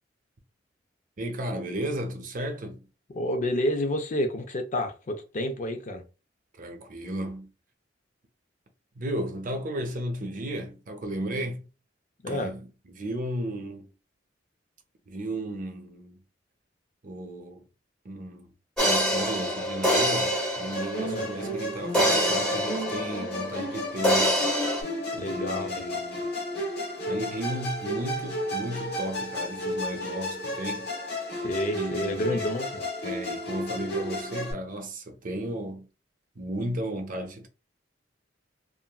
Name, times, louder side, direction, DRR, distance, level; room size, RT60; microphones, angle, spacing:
voice 1, 1.2-2.9 6.6-7.5 9.0-11.7 12.3-13.9 15.1-16.2 17.0-17.6 18.0-18.5 18.8-24.4 25.2-26.2 27.0-30.9 31.7-32.5 33.0-35.9 36.4-37.5, right 1 dB, 45° right, 0.6 m, -34 dB
voice 2, 3.1-6.0 12.2-12.5 21.0-21.3 25.2-26.0 31.4-32.8, left 1 dB, 45° left, 0.5 m, -29 dB
sound 1, 18.8-21.4 21.9-23.7 24.0-24.8, equal, 5° left, 0.9 m, -25 dB
Musical instrument, 20.7-34.5, left 1 dB, 60° left, 1.0 m, -33 dB
2.9 x 2.5 x 2.2 m
head